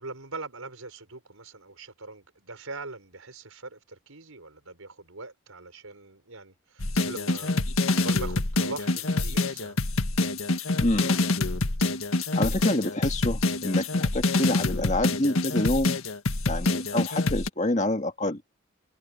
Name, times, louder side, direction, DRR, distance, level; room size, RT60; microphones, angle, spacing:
voice 1, 0.0-7.7 7.9-9.8, right 3 dB, 80° right, 5.0 m, -41 dB
sound 1, 6.8-17.5, left 2 dB, 80° left, 1.7 m, -26 dB
voice 2, 10.8-11.2 12.4-16.0 16.5-18.4, left 1 dB, 35° left, 1.9 m, -27 dB
head